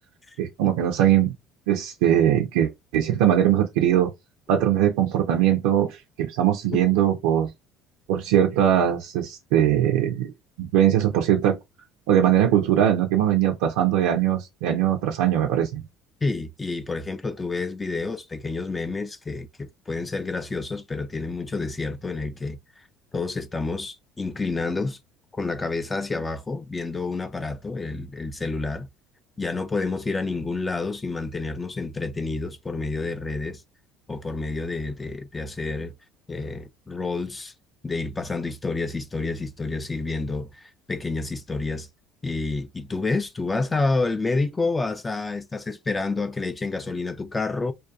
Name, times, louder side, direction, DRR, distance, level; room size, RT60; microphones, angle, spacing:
voice 1, 0.4-1.3 1.7-4.1 4.5-7.5 8.1-10.3 10.6-11.6 12.1-15.8, right 10 dB, 80° right, 0.3 m, -21 dB
voice 2, 16.2-22.6 23.1-25.0 25.3-28.9 29.4-33.6 34.1-35.9 36.3-37.5 37.8-41.9 42.2-47.7, left 3 dB, 20° left, 0.3 m, -29 dB
2.4 x 2.2 x 2.6 m
hypercardioid pair, 70°, 0 cm